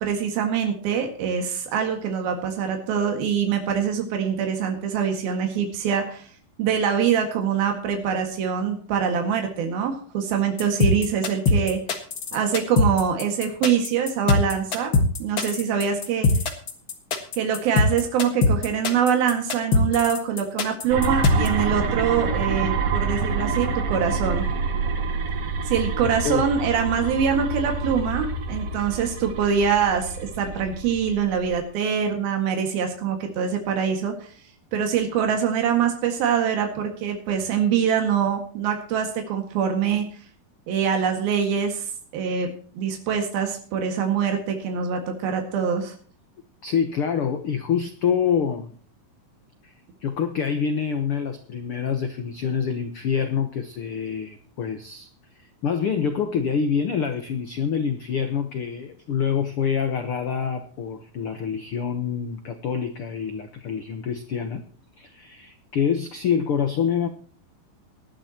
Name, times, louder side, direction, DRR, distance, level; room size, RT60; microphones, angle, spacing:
voice 1, 0.0-6.3 6.6-11.8 12.3-14.9 15.2-16.3 17.3-24.5 25.7-34.3 34.7-40.1 40.7-41.9 42.1-45.9, right 7 dB, 85° right, 4 dB, 3.8 m, -24 dB
sound 1, 10.6-21.5, left 3 dB, 45° left, 1.8 m, -21 dB
sound 2, 20.9-31.6, right 4 dB, 50° right, 2.0 m, -27 dB
voice 2, 26.0-26.4 46.6-48.7 49.6-49.7 50.0-55.1 55.6-64.6 65.0-67.1, left 7 dB, 80° left, 8 dB, 1.2 m, -26 dB
19.0 x 12.0 x 2.9 m, 0.43 s
omnidirectional pair, 4.1 m